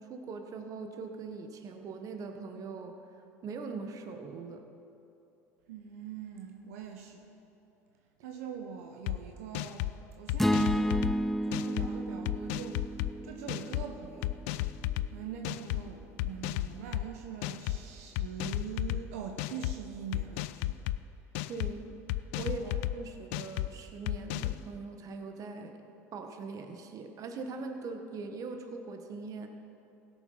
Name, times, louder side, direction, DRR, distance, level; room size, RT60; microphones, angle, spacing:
voice 1, 0.0-2.9 3.4-4.6 21.5-22.0 22.4-22.6 22.9-25.8 26.1-29.5, right 4 dB, 45° right, 5 dB, 1.3 m, -41 dB
voice 2, 5.7-7.3 8.2-9.9 10.2-10.9 11.5-12.8 13.2-14.4 15.1-20.8 22.4-22.7, right 7 dB, 80° right, 3 dB, 1.0 m, -43 dB
sound 1, 9.1-9.2 9.5-9.9 10.3-11.1 11.5-11.9 12.3-13.1 13.5-13.8 14.2-15.1 15.4-15.8 16.2-17.0 17.4-17.8 18.2-19.0 19.4-19.7 20.1-21.0 21.3-21.7 22.1-22.9 23.3-23.7 24.1-24.6, left 16 dB, 75° left, 0.4 m, -33 dB
sound 2, 10.4-14.7, equal, 5° left, 0.4 m, -32 dB
16.5 x 7.0 x 5.6 m, 2.7 s
hypercardioid pair, 85°, 8 cm